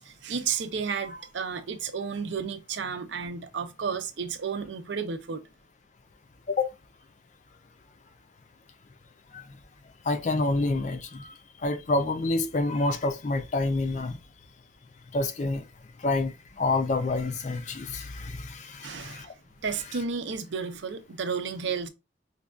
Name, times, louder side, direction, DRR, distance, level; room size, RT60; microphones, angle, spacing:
voice 1, 0.0-5.4 18.8-19.3 19.6-21.9, right 6 dB, 80° right, 0.5 m, -32 dB
voice 2, 10.0-11.3 11.6-14.2 15.1-15.7 16.0-19.3, left 2 dB, 40° left, 0.4 m, -28 dB
5.2 x 2.3 x 2.3 m
head